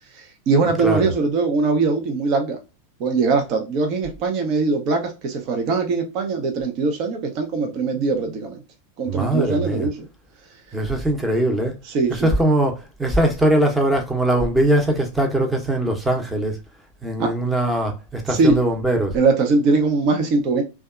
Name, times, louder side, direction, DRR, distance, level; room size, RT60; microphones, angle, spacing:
voice 1, 0.1-2.6 3.0-8.6 9.0-10.0 11.9-12.3 17.2-17.3 18.3-18.6 19.1-20.6, right 4 dB, 45° right, 0.6 m, -21 dB
voice 2, 9.1-9.9 10.7-11.8 12.1-16.6 17.0-19.1, right 1 dB, 10° right, 0.8 m, -21 dB
2.7 x 2.3 x 2.3 m
hypercardioid pair, 95°, 0 cm